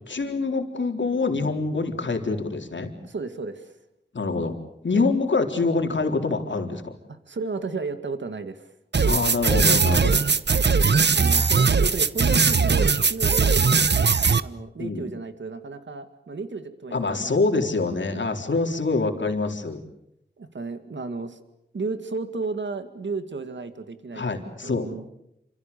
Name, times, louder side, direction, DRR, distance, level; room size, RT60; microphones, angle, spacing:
voice 1, 0.1-2.9 4.1-4.6 4.8-6.9 9.0-10.2 14.8-15.0 16.9-19.8 24.1-24.9, left 3 dB, 85° left, 4 dB, 4.0 m, -25 dB
voice 2, 3.0-3.8 4.9-5.1 7.1-8.7 11.1-17.7 20.4-21.4 21.7-24.2 24.6-25.1, right 3 dB, 90° right, 9 dB, 2.2 m, -33 dB
sound 1, 8.9-14.4, right 5 dB, 70° right, 1.1 m, -19 dB
29.5 x 27.0 x 7.0 m, 0.80 s
wide cardioid pair, 80°, 19 cm